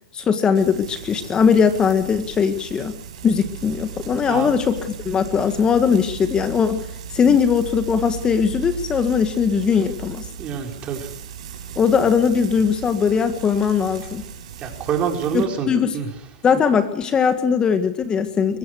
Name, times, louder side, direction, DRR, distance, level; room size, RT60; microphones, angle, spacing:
voice 1, 0.1-2.9 3.2-4.8 5.0-6.9 7.1-10.3 11.7-14.2 15.3-15.9 16.4-18.6, left 6 dB, 25° left, 9 dB, 1.7 m, -19 dB
Frying (food), 0.5-15.4, right 8 dB, 70° right, 5.3 m, -36 dB
voice 2, 10.4-11.1 14.6-16.1, right 7 dB, 35° right, 3 dB, 4.8 m, -26 dB
23.0 x 17.5 x 6.5 m, 0.73 s
hypercardioid pair, 115°, 4 cm